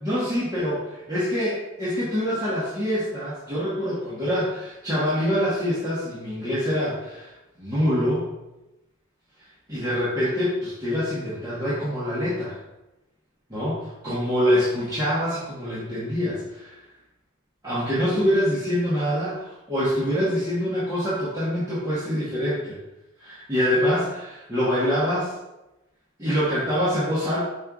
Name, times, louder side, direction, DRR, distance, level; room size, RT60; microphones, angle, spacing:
voice 1, 0.0-7.3 7.6-8.3 9.7-12.6 13.5-16.7 17.6-22.8 23.2-25.3 26.2-27.4, equal, 15° right, -11 dB, 1.1 m, -25 dB
5.0 x 4.3 x 2.3 m, 0.97 s
head